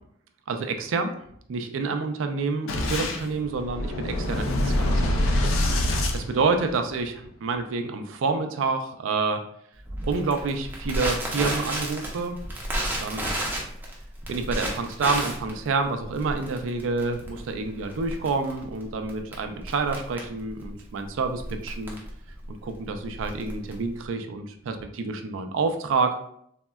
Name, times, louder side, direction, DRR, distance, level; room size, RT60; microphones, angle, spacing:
voice 1, 0.5-1.1 1.5-5.5 6.1-7.1 7.4-9.4 10.0-12.4 12.9-13.4 14.3-22.0 22.6-26.2, right 4 dB, 70° right, 6 dB, 0.4 m, -28 dB
Boom, 2.7-7.1, left 1 dB, 80° left, 0.4 m, -25 dB
Crackle, 9.9-24.1, right 1 dB, 10° right, 0.5 m, -33 dB
3.5 x 2.1 x 2.2 m, 0.68 s
head